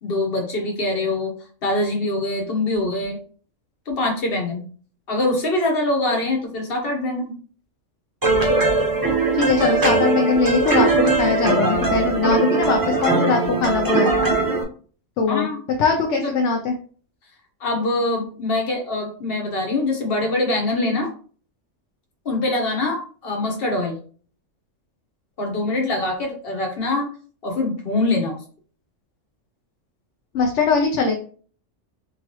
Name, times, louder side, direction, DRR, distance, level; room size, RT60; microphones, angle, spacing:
voice 1, 0.0-1.3 1.6-3.2 3.9-4.6 5.1-7.3 15.3-15.6 16.2-16.5 17.6-21.1 22.2-24.0 25.4-27.1 27.4-28.4, left 2 dB, 50° left, 1 dB, 1.3 m, -23 dB
sound 1, 8.2-14.6, right 3 dB, 20° right, 0.6 m, -20 dB
voice 2, 9.3-14.2 15.2-15.5 15.8-16.7 30.3-31.2, left 4 dB, 70° left, 2 dB, 0.9 m, -21 dB
3.6 x 3.1 x 3.0 m, 0.42 s
omnidirectional pair, 1.3 m